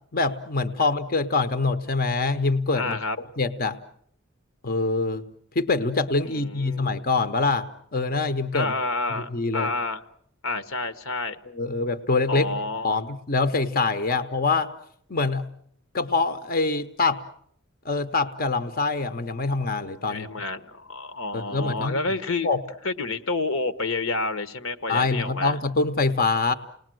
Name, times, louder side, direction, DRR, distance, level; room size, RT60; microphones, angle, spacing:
voice 1, 0.1-3.0 3.4-3.8 4.6-5.3 5.5-8.7 9.3-9.7 11.5-12.5 12.8-14.7 15.1-15.5 15.9-17.2 17.8-20.3 21.3-22.0 22.4-22.6 24.9-26.5, left 3 dB, 45° left, 10 dB, 1.0 m, -24 dB
voice 2, 2.7-3.2 6.2-6.9 8.5-10.0 10.4-11.4 12.3-13.0 20.1-22.5 22.8-25.6, left 3 dB, 80° left, 11 dB, 1.3 m, -29 dB
29.5 x 19.5 x 7.8 m, 0.66 s
head